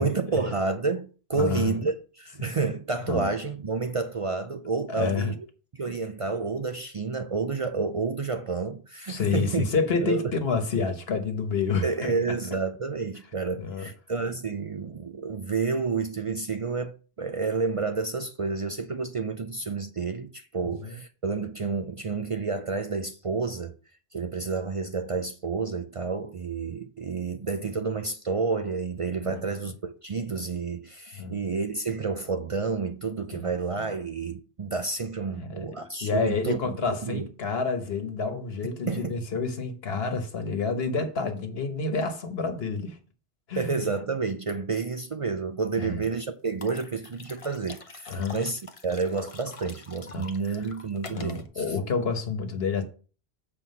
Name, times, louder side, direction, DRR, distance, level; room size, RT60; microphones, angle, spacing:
voice 1, 0.0-5.5 5.7-9.6 10.0-10.3 11.8-23.7 24.1-36.6 37.0-37.3 38.9-39.2 43.6-51.8, right 4 dB, 45° right, 0.5 m, -30 dB
voice 2, 1.3-1.8 3.1-3.3 4.9-5.3 9.1-12.1 13.6-13.9 14.2-14.3 20.6-21.0 29.2-29.4 31.1-31.4 33.3-33.8 35.3-43.0 43.5-43.8 45.8-46.0 48.1-48.4 50.1-50.6 51.1-52.8, left 4 dB, 75° left, 1.4 m, -29 dB
sound 1, 45.8-46.1 46.6-51.5, left 3 dB, 35° left, 0.8 m, -45 dB
7.5 x 4.3 x 5.4 m
omnidirectional pair, 1.0 m